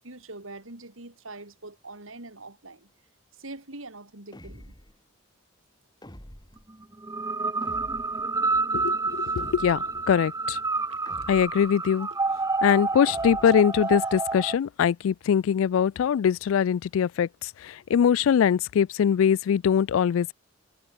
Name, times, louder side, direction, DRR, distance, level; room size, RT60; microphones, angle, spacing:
voice 1, 0.0-2.9 3.4-4.7, right 2 dB, 90° right, 4.0 m, -43 dB
sound 1, 4.3-5.0 6.0-6.7 7.6-8.3 9.4-10.0 11.1-11.7 13.1-13.7, equal, 20° left, 4.2 m, -46 dB
sound 2, 7.0-14.6, right 3 dB, 15° right, 0.9 m, -29 dB
voice 2, 8.7-10.6 11.3-12.1 12.6-20.3, left 8 dB, 75° left, 0.3 m, -23 dB
sound 3, 9.9-10.2 10.7-12.6 12.9-14.5, right 4 dB, 70° right, 4.1 m, -57 dB
head